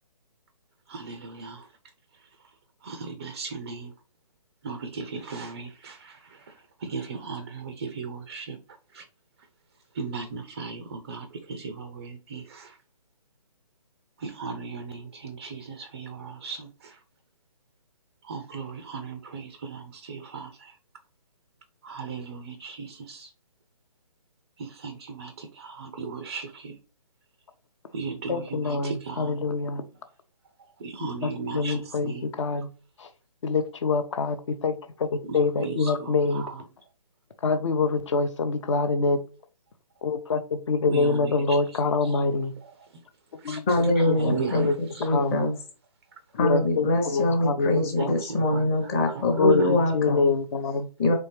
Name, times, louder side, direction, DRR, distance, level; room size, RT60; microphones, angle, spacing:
voice 1, 0.9-1.6 2.8-3.9 4.6-6.2 6.8-8.6 8.9-9.0 10.0-12.7 14.2-16.9 18.3-20.7 21.8-23.3 24.6-26.8 27.9-29.4 30.8-32.3 35.2-36.6 40.9-42.2 43.4-43.6 44.0-45.1 48.0-48.7 49.1-50.0, right 5 dB, 25° right, 0.4 m, -37 dB
voice 2, 28.3-29.8 31.0-32.7 33.4-36.4 37.4-39.2 40.0-42.5 43.4-43.6 44.1-44.7 45.1-45.4 46.4-48.1 49.4-50.9, left 4 dB, 50° left, 0.8 m, -25 dB
voice 3, 43.7-45.6 46.4-50.3 51.0-51.1, left 1 dB, 20° left, 0.9 m, -24 dB
4.2 x 3.4 x 3.2 m
hypercardioid pair, 160°, 20 cm